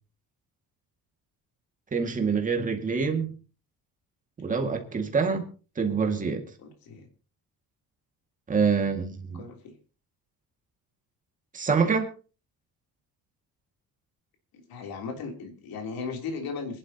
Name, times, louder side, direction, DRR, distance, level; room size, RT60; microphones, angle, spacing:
voice 1, 1.9-3.3 4.4-5.5 5.8-6.4 8.5-9.4 11.5-12.1, right 5 dB, 20° right, 2.0 m, -26 dB
voice 2, 6.6-7.1 9.3-9.7 14.5-16.8, left 4 dB, 75° left, 3.4 m, -37 dB
26.5 x 11.0 x 2.9 m
cardioid pair, 175°, 36 cm